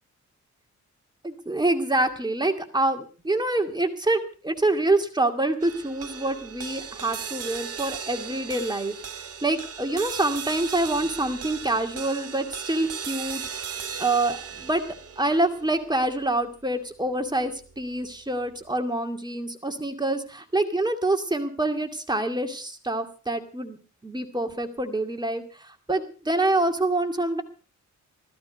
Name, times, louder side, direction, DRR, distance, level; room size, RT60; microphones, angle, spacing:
voice 1, 1.2-13.4 14.0-14.8 15.2-23.8 24.0-27.4, right 2 dB, 15° right, 5 dB, 2.4 m, -26 dB
sound 1, 5.6-18.1, right 7 dB, 50° right, 1.6 m, -37 dB
15.0 x 14.0 x 5.2 m, 0.37 s
cardioid pair, 90°, 30 cm